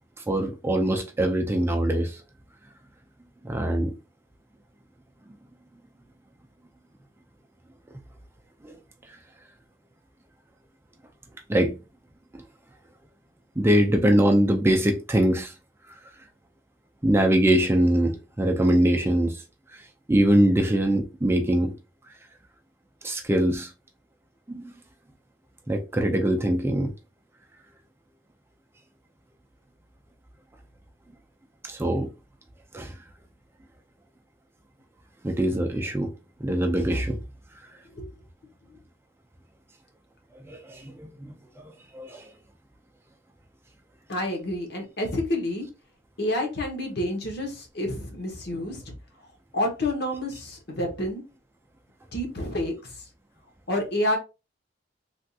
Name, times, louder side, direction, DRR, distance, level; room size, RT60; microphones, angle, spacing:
voice 1, 0.3-2.2 3.4-3.9 8.6-8.7 11.5-11.8 13.6-15.5 17.0-19.4 20.1-21.7 23.0-23.7 24.5-24.6 25.7-26.9 31.6-32.1 32.7-32.9 35.2-36.1 36.4-37.2 40.5-41.3 41.9-42.2, right 1 dB, 15° right, 0.4 m, -22 dB
voice 2, 44.1-45.7 46.2-48.8 49.5-51.2 52.1-52.7 53.7-54.2, left 1 dB, 60° left, 1.0 m, -28 dB
3.4 x 2.4 x 2.7 m
head